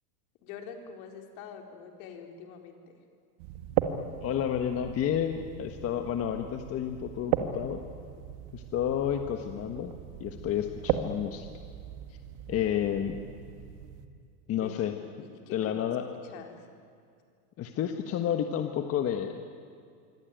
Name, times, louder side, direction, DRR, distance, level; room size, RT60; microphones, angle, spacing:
voice 1, 0.4-3.0 14.5-16.7, left 6 dB, 60° left, 3 dB, 4.4 m, -46 dB
sound 1, 3.4-14.1, right 10 dB, 50° right, 2.1 m, -36 dB
voice 2, 4.2-7.8 8.5-9.9 10.2-11.5 12.5-13.2 14.5-14.9 15.5-16.0 17.6-19.5, left 9 dB, 30° left, 6 dB, 1.5 m, -30 dB
26.0 x 24.5 x 9.3 m, 2.3 s
supercardioid pair, 140°, 47 cm